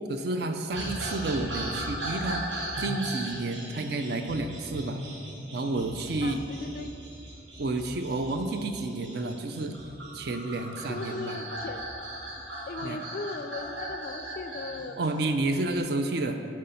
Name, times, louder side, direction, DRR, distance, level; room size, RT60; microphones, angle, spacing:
voice 1, 0.1-2.4 2.8-5.0 5.5-6.4 7.6-9.8 10.1-11.4 12.8-13.0 15.0-16.4, right 2 dB, 55° right, 6 dB, 0.4 m, -30 dB
sound 1, 0.7-15.8, right 1 dB, 80° right, 1.3 m, -38 dB
voice 2, 6.2-6.9 10.9-11.9 12.7-15.1, left 3 dB, 45° left, 8 dB, 0.3 m, -38 dB
8.0 x 3.8 x 5.6 m, 2.7 s
head